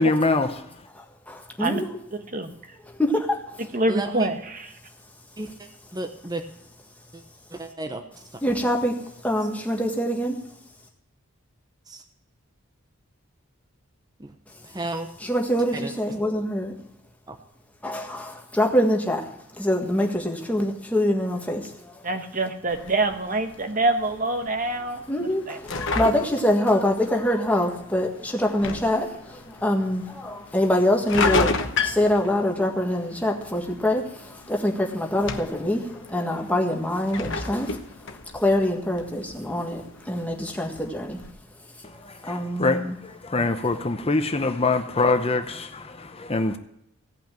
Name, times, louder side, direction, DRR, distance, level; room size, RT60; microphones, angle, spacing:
voice 1, 0.0-0.9 41.8-46.6, left 3 dB, 25° left, 0.8 m, -24 dB
voice 2, 0.9-2.0 2.9-3.6 8.4-10.4 15.2-16.8 17.8-22.0 25.1-41.2 42.2-43.0, left 1 dB, 5° left, 1.7 m, -25 dB
voice 3, 2.1-2.5 3.7-4.7 22.0-25.6, right 2 dB, 40° right, 1.3 m, -26 dB
voice 4, 3.9-4.3 5.4-6.4 7.1-7.2 7.5-8.0 8.3-8.4 11.9-12.0 14.2-14.3 14.6-15.1 15.7-15.9 17.3-17.4, right 1 dB, 20° right, 0.9 m, -33 dB
sound 1, 22.7-41.3, left 4 dB, 60° left, 1.1 m, -33 dB
17.0 x 5.9 x 9.1 m
head